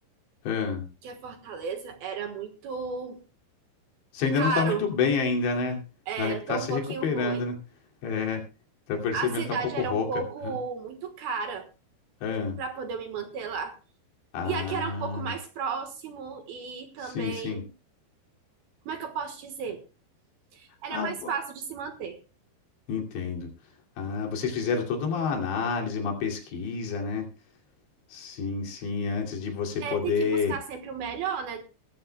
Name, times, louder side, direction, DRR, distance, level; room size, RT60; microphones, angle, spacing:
voice 1, 0.4-0.9 4.1-5.8 6.2-7.6 8.0-8.5 8.9-10.6 12.2-12.6 14.3-15.3 17.0-17.6 20.9-21.3 22.9-23.5 24.0-27.3 28.1-30.6, left 5 dB, 70° left, 1 dB, 4.7 m, -29 dB
voice 2, 1.0-3.2 4.3-4.8 6.1-7.5 9.1-11.7 12.6-13.8 14.4-17.7 18.9-19.8 20.5-22.2 29.8-31.6, right 6 dB, 65° right, 6 dB, 2.8 m, -33 dB
21.0 x 13.5 x 2.3 m, 0.30 s
omnidirectional pair, 5.4 m